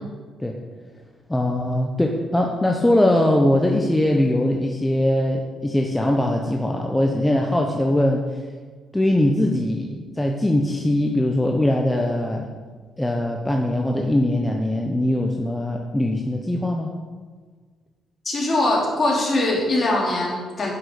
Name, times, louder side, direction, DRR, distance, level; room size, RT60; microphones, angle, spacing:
voice 1, 1.3-8.2 8.9-12.5 13.0-16.9, left 1 dB, 10° left, 1 dB, 1.0 m, -21 dB
voice 2, 18.2-20.7, left 2 dB, 40° left, -2 dB, 3.3 m, -22 dB
9.8 x 6.2 x 6.7 m, 1.5 s
cardioid pair, 90°, 0 cm